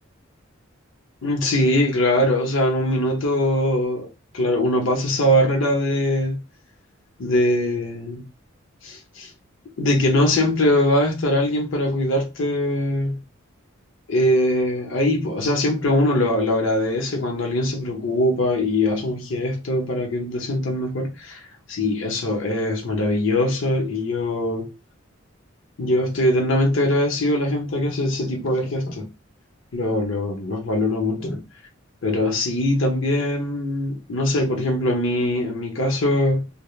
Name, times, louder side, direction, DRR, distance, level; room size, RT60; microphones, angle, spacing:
voice 1, 1.2-4.1 4.3-6.4 7.2-8.3 8.8-9.3 9.8-13.2 14.1-21.4 21.7-24.7 25.8-29.1 29.7-31.4 32.0-36.5, left 1 dB, 65° left, 0.7 m, -22 dB
2.3 x 2.1 x 3.1 m
head